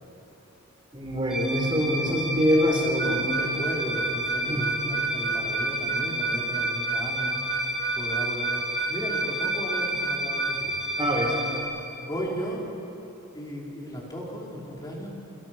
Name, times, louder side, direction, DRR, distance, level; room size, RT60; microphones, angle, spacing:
voice 1, 0.9-3.4 4.5-4.7 11.0-11.4, equal, 20° right, -2 dB, 4.8 m, -25 dB
sound 1, 1.3-11.6, equal, 5° right, 5.5 m, -31 dB
voice 2, 3.0-7.5 7.9-10.8 12.0-12.7 13.3-15.1, equal, 20° left, -3 dB, 4.9 m, -35 dB
Harmonica, 3.0-10.6, right 6 dB, 45° right, 1.5 m, -31 dB
28.0 x 26.5 x 6.2 m, 3.0 s
head